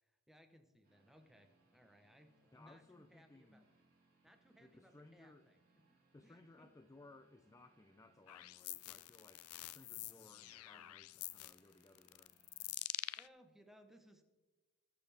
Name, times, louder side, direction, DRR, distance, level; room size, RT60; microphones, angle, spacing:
voice 1, 0.0-3.7 4.2-5.8 6.2-6.7 9.9-10.3 13.0-14.2, equal, ahead, 1.0 m, -65 dB
sound 1, 0.8-12.7, right 3 dB, 45° right, 3.5 m, -75 dB
voice 2, 2.5-3.7 4.6-5.5 6.1-12.4, left 2 dB, 15° left, 0.4 m, -62 dB
sound 2, 8.3-13.3, left 17 dB, 80° left, 0.4 m, -47 dB
20.0 x 6.8 x 3.5 m
head